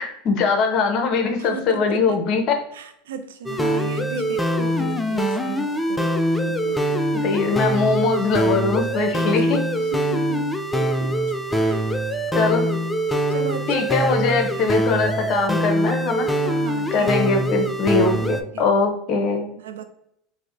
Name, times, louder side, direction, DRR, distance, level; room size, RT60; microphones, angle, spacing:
voice 1, 0.0-2.5 7.2-9.6 12.4-12.6 13.7-16.3 16.9-19.5, left 4 dB, 50° left, 5 dB, 0.7 m, -21 dB
voice 2, 1.4-2.2 2.7-6.1 6.4-7.0 9.1-11.2 11.6-12.0 12.3-12.9 13.3-14.7 15.0-15.1 16.3-17.3 18.1-18.7 19.6-19.8, right 6 dB, 85° right, 7 dB, 0.4 m, -36 dB
sound 1, 3.5-18.4, equal, 10° left, 0.3 m, -23 dB
4.8 x 2.1 x 2.5 m, 0.74 s
hypercardioid pair, 100°, 0 cm